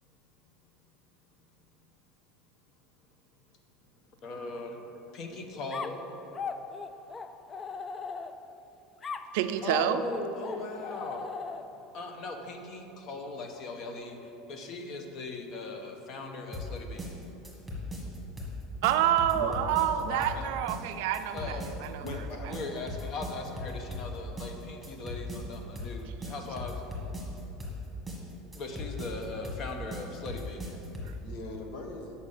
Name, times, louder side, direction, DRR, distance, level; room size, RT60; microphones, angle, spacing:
voice 1, 4.2-6.1 9.6-11.3 11.9-17.1 21.3-21.9 22.5-26.8 28.5-30.8, left 2 dB, 45° left, 4 dB, 1.0 m, -39 dB
sound 1, 5.7-8.6 9.0-11.9, left 5 dB, 20° left, 0.3 m, -39 dB
voice 2, 9.3-10.0 18.8-22.0, right 11 dB, 75° right, 10 dB, 0.4 m, -28 dB
sound 2, 16.5-31.2, left 2 dB, 5° right, 1.6 m, -38 dB
voice 3, 20.0-20.5 22.0-22.6 31.2-32.1, left 2 dB, 70° left, 2 dB, 1.3 m, -40 dB
7.1 x 5.4 x 6.5 m, 2.9 s
supercardioid pair, 135°, 0 cm